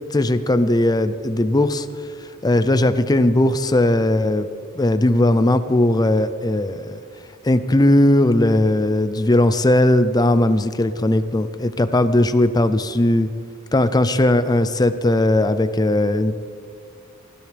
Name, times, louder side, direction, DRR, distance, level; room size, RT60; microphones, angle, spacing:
voice 1, 0.1-1.9 2.4-4.4 4.8-7.0 7.4-13.3 13.7-16.4, left 1 dB, 20° left, 11 dB, 0.5 m, -18 dB
20.5 x 14.0 x 3.4 m, 2.1 s
head